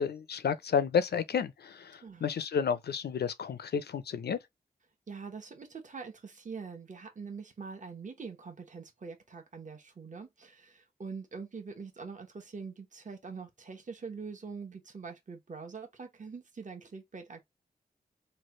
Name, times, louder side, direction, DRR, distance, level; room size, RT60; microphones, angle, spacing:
voice 1, 0.0-4.4, left 7 dB, 80° left, 0.4 m, -31 dB
voice 2, 5.1-17.4, right 5 dB, 50° right, 1.0 m, -44 dB
3.2 x 2.3 x 2.9 m
wide cardioid pair, 65°, 17 cm